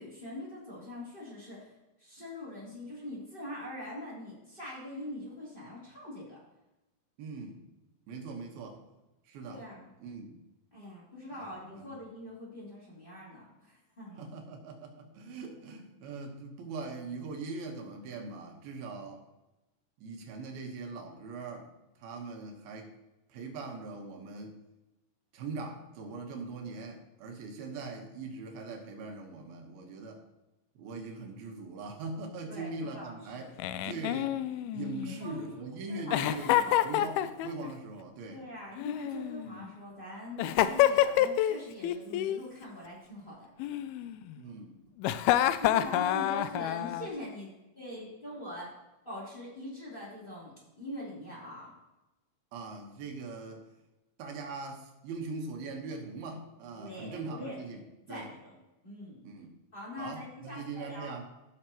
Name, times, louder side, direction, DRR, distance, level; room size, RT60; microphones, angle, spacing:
voice 1, 0.0-1.7 2.0-6.4 9.5-9.9 10.7-14.2 32.5-33.5 35.2-35.6 35.9-36.9 38.3-43.5 45.6-48.7 49.0-51.7 56.8-57.6 58.1-58.6 58.8-59.3 59.7-61.1, left 1 dB, 15° left, -6 dB, 3.2 m, -43 dB
voice 2, 7.2-7.6 8.1-8.9 9.3-9.7 10.0-10.4 11.3-11.4 11.8-11.9 14.2-19.2 20.0-21.7 22.0-22.9 23.3-24.5 25.3-30.2 30.8-33.5 33.8-34.3 34.7-38.4 39.4-39.6 44.4-44.8 52.5-53.6 54.2-57.8 58.1-58.3 59.2-59.5 60.0-61.2, right 3 dB, 90° right, 3 dB, 3.2 m, -41 dB
Giggle, 33.6-35.4 36.1-37.7 38.8-39.7 40.4-41.6 41.8-42.4 43.6-44.4 45.0-47.1, left 12 dB, 90° left, 2.4 m, -28 dB
16.5 x 6.1 x 3.0 m, 1.0 s
omnidirectional pair, 4.3 m